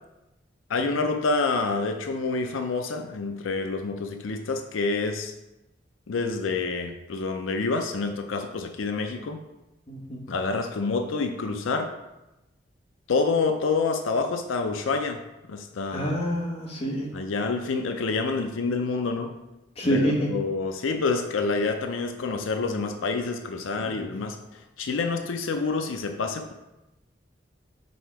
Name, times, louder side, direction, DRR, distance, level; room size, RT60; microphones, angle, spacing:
voice 1, 0.7-5.3 6.1-9.4 10.3-11.9 13.1-15.2 15.5-16.2 17.1-19.3 19.9-26.5, left 4 dB, 90° left, 6 dB, 0.5 m, -27 dB
voice 2, 9.9-10.2 15.9-17.1 19.8-20.3 24.0-24.1, equal, 30° left, -2 dB, 1.2 m, -27 dB
6.3 x 3.6 x 4.6 m, 0.98 s
head